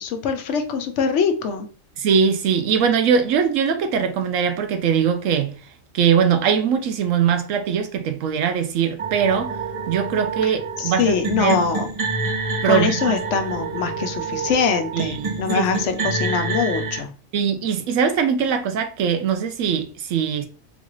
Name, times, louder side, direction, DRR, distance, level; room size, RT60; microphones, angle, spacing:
voice 1, 0.0-1.7 10.4-10.5 10.8-11.9 12.7-17.1, left 5 dB, 70° left, 0.9 m, -23 dB
voice 2, 2.0-5.5 5.9-9.6 9.9-11.6 12.6-13.2 14.9-15.7 16.0-16.1 17.3-20.5, right 7 dB, 85° right, 1.0 m, -21 dB
sound 1, 9.0-17.0, right 4 dB, 40° right, 0.6 m, -28 dB
3.9 x 2.4 x 3.0 m
omnidirectional pair, 1.3 m